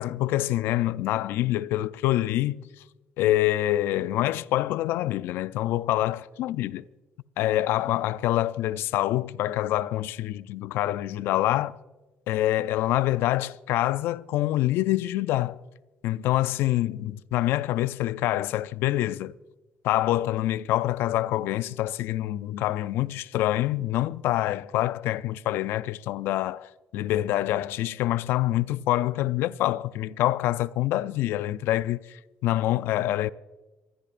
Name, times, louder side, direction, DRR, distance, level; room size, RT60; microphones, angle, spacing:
voice 1, 0.0-2.7 3.2-6.8 7.4-11.8 12.3-15.6 16.0-19.3 19.8-33.3, left 15 dB, 80° left, 0.4 m, -26 dB
27.0 x 14.0 x 2.5 m
cardioid pair, 90°, 4 cm